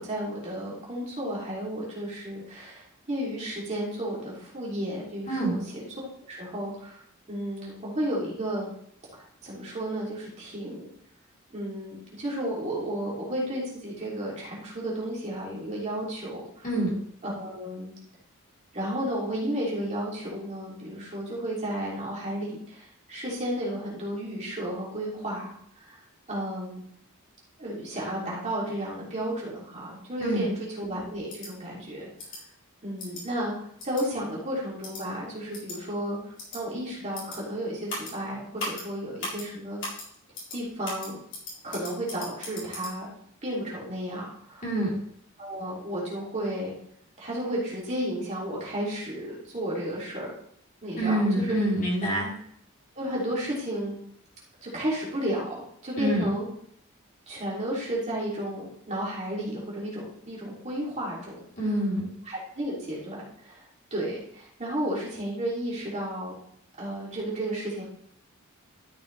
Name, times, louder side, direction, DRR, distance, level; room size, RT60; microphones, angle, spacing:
voice 1, 0.0-7.0 7.3-8.7 9.1-10.9 11.5-16.6 17.2-17.9 18.7-26.0 26.3-26.8 27.6-32.1 32.8-39.8 40.5-41.2 41.6-43.1 43.4-44.6 45.4-46.8 47.2-50.3 50.8-51.6 52.9-54.0 54.6-55.5 55.8-56.5 57.3-61.4 62.3-63.6 63.9-66.3 66.8-67.8, right 1 dB, 35° right, -6 dB, 3.2 m, -33 dB
sound 1, 31.3-31.5 32.2-32.4 33.0-33.2 33.8-34.0 34.8-35.0 35.5-35.8 36.4-36.6 37.1-37.4 37.9-38.1 38.6-38.8 39.2-39.4 39.8-40.0 40.3-40.6 40.8-42.9, left 2 dB, 60° left, 4.2 m, -37 dB
voice 2, 44.6-44.9 51.0-52.3 56.0-56.3 61.6-62.1, right 1 dB, 40° left, -5 dB, 3.8 m, -26 dB
12.5 x 6.6 x 3.4 m, 0.69 s
head